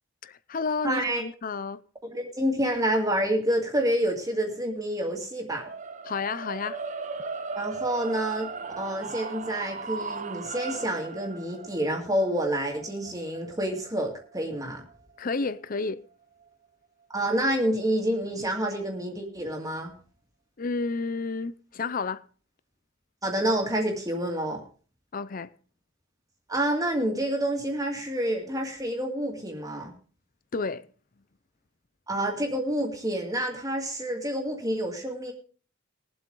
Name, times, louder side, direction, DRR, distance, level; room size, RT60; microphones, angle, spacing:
voice 1, 0.2-1.8 6.0-6.8 15.2-16.0 20.6-22.2 25.1-25.5 30.5-30.9, left 4 dB, 40° left, 0.6 m, -31 dB
voice 2, 0.8-1.2 2.0-5.6 7.6-8.5 8.8-14.8 17.1-19.9 23.2-24.6 26.5-29.9 32.1-35.3, right 1 dB, 15° right, 2.2 m, -28 dB
sound 1, 5.5-15.7, right 4 dB, 35° right, 0.8 m, -38 dB
21.0 x 7.9 x 3.8 m
head